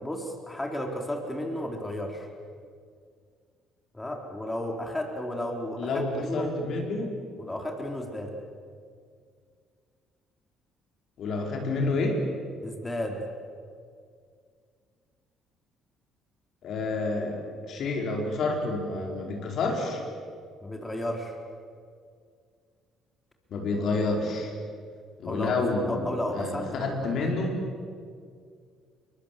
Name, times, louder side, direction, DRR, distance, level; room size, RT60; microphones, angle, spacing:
voice 1, 0.0-2.3 3.9-6.5 7.4-8.3 12.6-13.2 20.6-21.4 25.2-25.5 25.9-27.2, left 1 dB, 15° left, 2 dB, 4.2 m, -33 dB
voice 2, 5.8-7.1 11.2-12.2 16.6-17.4 17.6-20.0 23.5-24.5 25.2-26.1 26.3-27.6, left 3 dB, 55° left, 1 dB, 5.1 m, -29 dB
29.0 x 23.5 x 7.8 m, 2.2 s
figure-of-eight pair, 50°, 0 cm